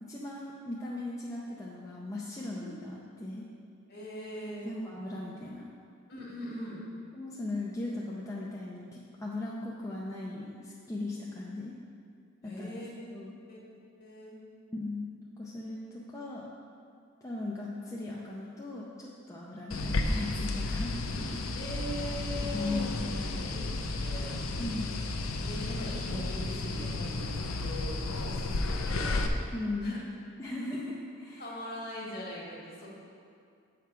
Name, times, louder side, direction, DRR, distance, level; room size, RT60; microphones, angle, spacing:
voice 1, 0.0-3.5 4.6-5.7 7.1-11.7 12.4-12.8 13.1-13.3 14.7-15.1 15.4-16.5 17.2-21.4 22.4-23.6 24.6-24.9 29.5-30.0 30.4-31.5, left 2 dB, 15° left, -5 dB, 0.5 m, -38 dB
voice 2, 3.9-4.7 6.1-6.8 12.4-12.9 13.5-13.6 14.0-14.4 21.5-22.9 23.6-24.4 25.4-29.2 29.8-30.0 31.4-32.9, equal, 45° left, -4 dB, 1.7 m, -41 dB
sound 1, 19.7-29.3, left 2 dB, 75° left, 0.5 m, -33 dB
7.6 x 5.0 x 4.5 m, 2.4 s
head